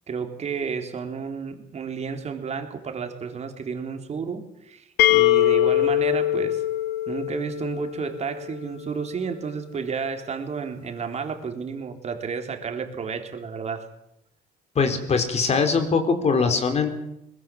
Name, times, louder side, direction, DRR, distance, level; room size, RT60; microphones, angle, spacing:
voice 1, 0.1-6.6 7.1-13.9, right 6 dB, 40° right, 6 dB, 3.8 m, -31 dB
sound 1, 5.0-8.7, left 14 dB, 75° left, 1.3 m, -22 dB
voice 2, 14.8-16.9, left 5 dB, 40° left, 7 dB, 4.2 m, -22 dB
21.5 x 21.0 x 7.7 m, 0.82 s
cardioid pair, 110°, 17 cm